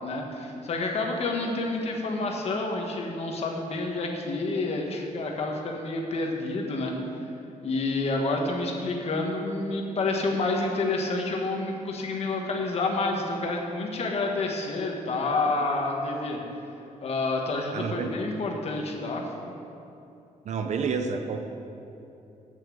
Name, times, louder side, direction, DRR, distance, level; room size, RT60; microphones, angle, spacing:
voice 1, 0.0-6.9 7.6-16.4 17.0-19.2, left 2 dB, 50° left, 1 dB, 1.4 m, -29 dB
voice 2, 17.7-18.2 20.4-21.4, right 5 dB, 55° right, 6 dB, 0.8 m, -29 dB
8.3 x 7.4 x 8.5 m, 2.8 s
wide cardioid pair, 180°, 14 cm